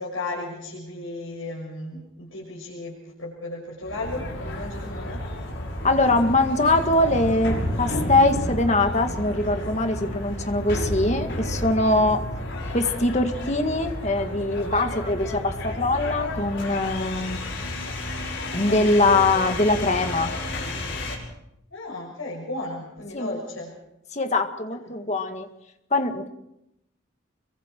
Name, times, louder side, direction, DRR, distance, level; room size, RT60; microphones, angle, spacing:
voice 1, 0.0-5.2 21.7-23.8 24.7-24.8, left 2 dB, 80° left, -4 dB, 6.4 m, -34 dB
sound 1, 3.8-21.2, left 1 dB, 65° left, 6.6 m, -31 dB
voice 2, 5.8-12.2 12.7-17.4 18.5-20.3 23.1-23.3 24.1-25.5 25.9-26.3, left 2 dB, 35° left, 6 dB, 1.9 m, -22 dB
28.5 x 23.5 x 4.6 m, 0.83 s
head